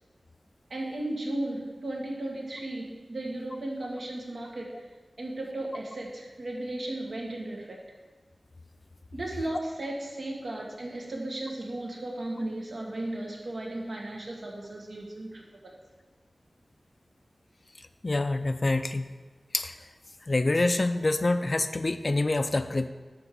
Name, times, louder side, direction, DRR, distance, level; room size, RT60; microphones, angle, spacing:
voice 1, 0.7-4.8 5.2-7.8 9.1-15.4, right 1 dB, 70° right, -2 dB, 1.8 m, -35 dB
voice 2, 18.0-19.1 19.5-19.7 20.3-22.9, left 2 dB, 45° left, 10 dB, 0.5 m, -26 dB
9.9 x 3.7 x 6.8 m, 1.3 s
wide cardioid pair, 80°, 0 cm